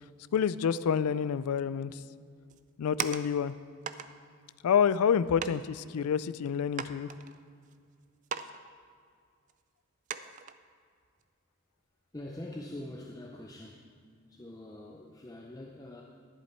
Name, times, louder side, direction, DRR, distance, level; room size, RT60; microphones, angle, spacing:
voice 1, 0.3-2.0 2.8-3.5 4.6-7.1, left 7 dB, 85° left, 17 dB, 0.4 m, -28 dB
sound 1, 2.5-3.5 3.8-4.1 4.9-5.0 5.4-5.7 6.2-6.3 6.7-7.7 8.2-8.6 8.8-8.9 9.5-9.6 10.1-10.5 11.0-11.2, right 7 dB, 35° right, 0.3 m, -38 dB
voice 2, 12.1-13.9 14.3-16.0, left 1 dB, 15° left, -1 dB, 0.5 m, -44 dB
11.5 x 10.5 x 4.4 m, 2.2 s
head